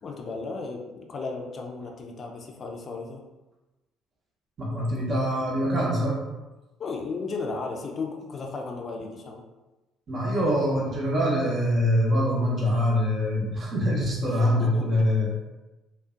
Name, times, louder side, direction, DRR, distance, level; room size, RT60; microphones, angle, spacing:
voice 1, 0.0-3.2 6.8-9.4 14.6-14.8, left 4 dB, 45° left, 1 dB, 0.4 m, -34 dB
voice 2, 4.6-6.3 10.1-15.3, equal, 45° right, -4 dB, 0.8 m, -24 dB
2.4 x 2.1 x 2.4 m, 1.1 s
hypercardioid pair, 55°, 0 cm